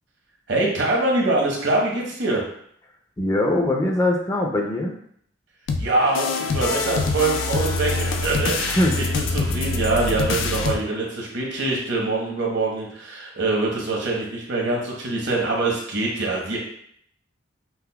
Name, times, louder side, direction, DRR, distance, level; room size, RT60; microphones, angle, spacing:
voice 1, 0.5-2.4 5.8-16.6, right 2 dB, 65° right, -2 dB, 0.9 m, -24 dB
voice 2, 3.2-5.0 8.7-9.0, left 1 dB, 20° left, 1 dB, 0.4 m, -22 dB
sound 1, 5.7-10.7, left 3 dB, 85° left, 0.3 m, -25 dB
5.6 x 2.0 x 2.2 m, 0.66 s
head